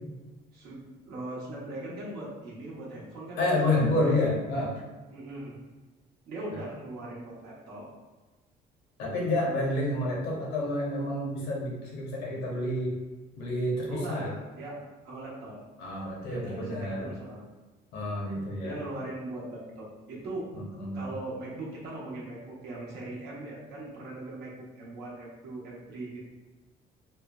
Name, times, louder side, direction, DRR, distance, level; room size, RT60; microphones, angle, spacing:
voice 1, 0.5-3.6 4.0-4.2 5.1-5.6 6.3-7.9 13.9-14.8 15.0-15.6 16.3-17.5 18.6-20.5 20.9-26.2, right 2 dB, 80° right, -5 dB, 0.9 m, -40 dB
voice 2, 3.4-4.7 6.5-6.6 9.0-12.9 13.4-14.4 15.8-17.1 17.9-18.8 20.5-21.1, left 1 dB, 80° left, -4 dB, 0.9 m, -29 dB
3.1 x 2.1 x 2.3 m, 1.2 s
cardioid pair, 110°, 17 cm